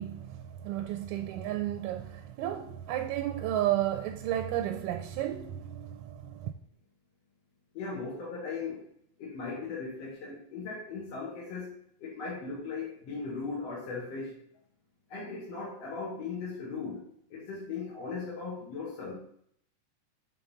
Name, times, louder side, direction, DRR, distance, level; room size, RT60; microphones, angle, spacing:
voice 1, 0.0-6.5, right 12 dB, 80° right, 2.0 m, -33 dB
voice 2, 7.7-8.9 9.2-11.7 12.0-14.4 15.1-17.0 17.3-19.1, left 4 dB, 60° left, 2.8 m, -38 dB
7.9 x 3.9 x 5.5 m
omnidirectional pair, 3.4 m